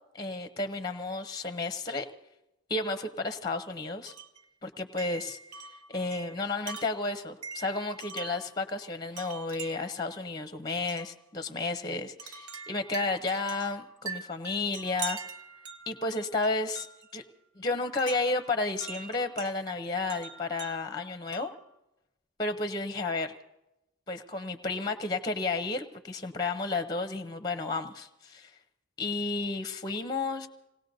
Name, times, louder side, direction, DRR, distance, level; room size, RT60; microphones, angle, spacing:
voice 1, 0.1-2.1 2.7-4.1 4.6-5.4 5.9-15.2 15.9-16.9 17.1-17.2 17.6-21.5 22.4-23.3 24.1-28.5 29.0-30.5, left 3 dB, 20° left, 9 dB, 0.6 m, -32 dB
Wind chime, 4.1-4.4 5.0-8.5 9.2-10.0 10.9-11.1 12.2-17.1 18.0-19.5 20.1-21.6, right 5 dB, 90° right, 0.9 m, -43 dB
26.5 x 18.5 x 2.6 m, 0.93 s
head